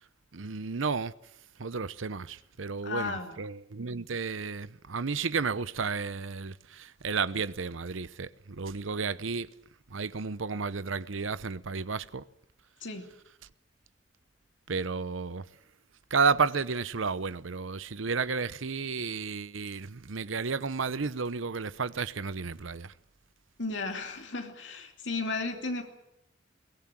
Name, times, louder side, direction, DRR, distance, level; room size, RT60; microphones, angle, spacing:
voice 1, 0.3-1.1 1.6-8.3 8.6-9.5 9.9-12.2 14.7-15.4 16.1-22.9, right 5 dB, 85° right, 0.8 m, -32 dB
voice 2, 2.8-3.4 12.8-13.1 23.6-25.8, left 3 dB, 65° left, 2.9 m, -34 dB
22.5 x 18.5 x 9.0 m
head